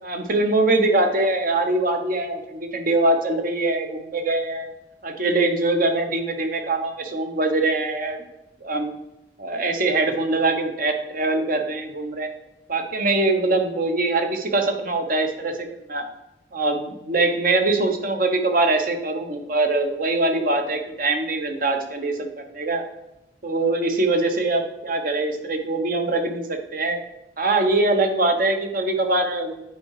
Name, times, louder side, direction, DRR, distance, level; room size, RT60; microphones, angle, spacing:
voice 1, 0.0-4.7 5.0-8.2 8.6-8.9 9.4-12.3 12.7-16.0 16.5-22.8 23.4-27.0 27.4-29.6, right 2 dB, 50° right, 5 dB, 1.0 m, -23 dB
9.2 x 4.8 x 4.8 m, 0.91 s
head